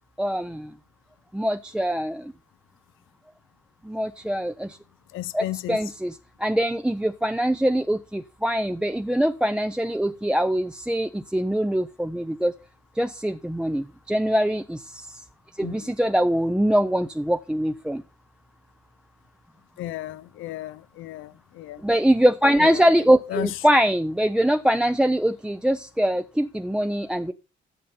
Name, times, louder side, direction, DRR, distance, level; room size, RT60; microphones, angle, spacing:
voice 1, 0.2-0.7 1.3-2.3 3.8-4.8 5.3-12.5 13.0-15.2 15.6-18.0 21.8-27.3, equal, 5° right, 0.5 m, -23 dB
voice 2, 5.1-5.8 15.6-15.9 19.8-21.8 22.6-22.8 23.3-23.5, left 14 dB, 85° left, 0.6 m, -34 dB
8.8 x 6.6 x 5.4 m
cardioid pair, 90°, 20 cm